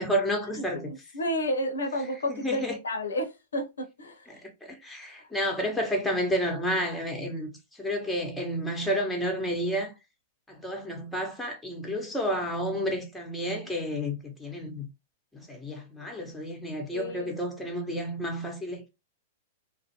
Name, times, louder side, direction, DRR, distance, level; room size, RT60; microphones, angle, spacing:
voice 1, 0.0-0.9 2.3-2.7 4.3-9.9 10.5-14.9 15.3-18.9, equal, 5° left, 0.8 m, -31 dB
voice 2, 0.9-4.4 16.9-17.3, equal, 80° left, 0.6 m, -31 dB
2.4 x 2.0 x 2.8 m
hypercardioid pair, 110°, 0 cm